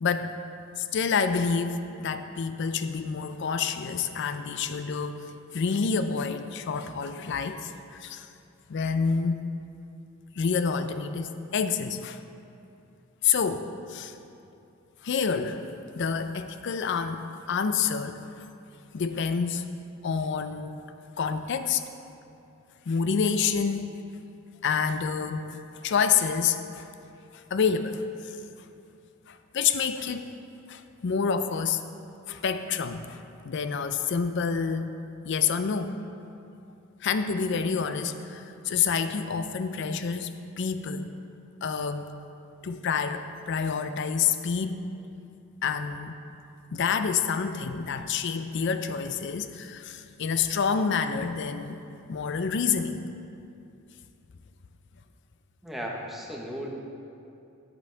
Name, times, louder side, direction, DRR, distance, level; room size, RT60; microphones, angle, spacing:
voice 1, 0.0-0.3 0.8-5.3 5.5-8.3 8.7-9.4 10.4-12.2 13.2-14.2 15.0-15.7 15.9-18.5 18.9-19.7 20.0-20.8 21.2-21.8 22.9-24.0 24.6-25.6 25.8-26.9 27.3-28.4 29.3-30.3 30.7-31.8 32.3-35.0 35.2-36.0 37.0-41.1 41.6-42.1 42.6-44.9 45.6-46.2 46.7-51.8 52.1-53.1, left 6 dB, 55° left, 10 dB, 0.4 m, -28 dB
voice 2, 55.6-56.7, equal, ahead, -2 dB, 0.9 m, -35 dB
11.0 x 5.4 x 4.4 m, 2.6 s
head